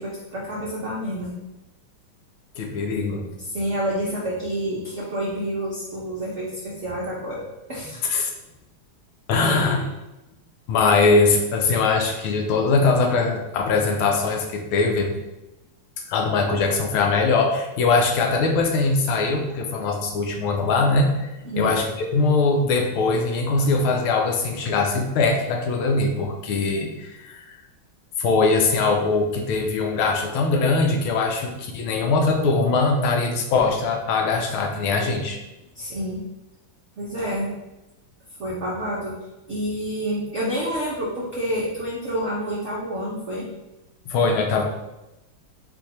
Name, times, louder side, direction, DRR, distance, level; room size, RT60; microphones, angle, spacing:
voice 1, 0.0-1.3 3.4-7.4 7.7-8.0 9.4-9.8 21.4-21.7 35.7-36.2 37.0-37.5 38.4-39.1 39.5-43.5, equal, 70° right, -5 dB, 0.6 m, -28 dB
voice 2, 2.6-3.2 8.0-8.3 9.3-9.8 10.7-15.1 16.1-27.5 28.2-35.4 44.1-44.6, left 3 dB, 80° left, 3 dB, 1.5 m, -21 dB
4.7 x 2.6 x 4.1 m, 0.99 s
omnidirectional pair, 2.3 m